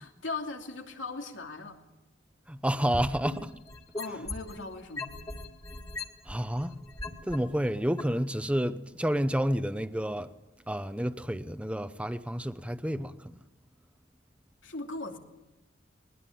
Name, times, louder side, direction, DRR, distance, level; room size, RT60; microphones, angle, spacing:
voice 1, 0.0-1.8 3.9-5.2 14.6-15.2, left 3 dB, 90° left, 2.9 m, -38 dB
voice 2, 2.5-3.5 6.3-6.8 7.3-10.3 10.7-13.1, equal, 5° right, 0.8 m, -29 dB
sound 1, 3.0-4.6 5.0-7.4 8.0-8.1, left 3 dB, 20° left, 2.1 m, -38 dB
21.0 x 20.5 x 8.7 m
head